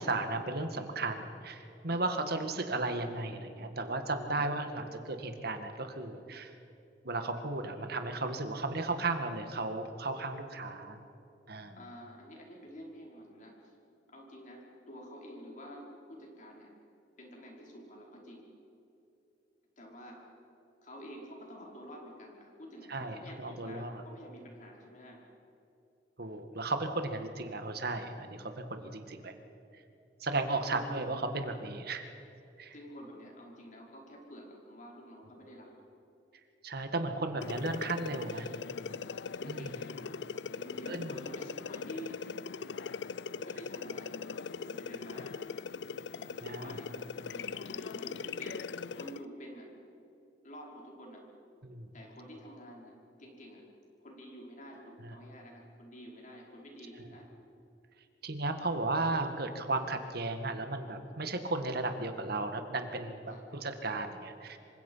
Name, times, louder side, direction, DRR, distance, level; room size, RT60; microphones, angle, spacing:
voice 1, 0.0-6.5 7.0-11.0 11.5-11.8 22.9-24.0 26.2-29.3 30.2-32.1 32.6-32.7 36.6-38.5 39.5-39.7 40.9-41.1 46.4-46.7 51.6-51.9 55.0-55.1 57.0-57.1 58.2-64.6, right 2 dB, 60° right, 7 dB, 2.0 m, -35 dB
voice 2, 11.8-13.8 14.1-16.7 17.2-18.5 19.8-20.3 20.8-25.3 30.7-31.0 32.7-35.8 39.3-40.2 40.5-42.2 43.4-44.3 44.6-45.5 46.5-49.7 50.4-51.3 51.9-53.6 54.0-57.3 63.3-63.4, equal, 45° left, -1 dB, 5.4 m, -49 dB
sound 1, 37.4-49.3, left 5 dB, 70° left, 0.5 m, -40 dB
27.0 x 25.0 x 5.8 m, 2.8 s
head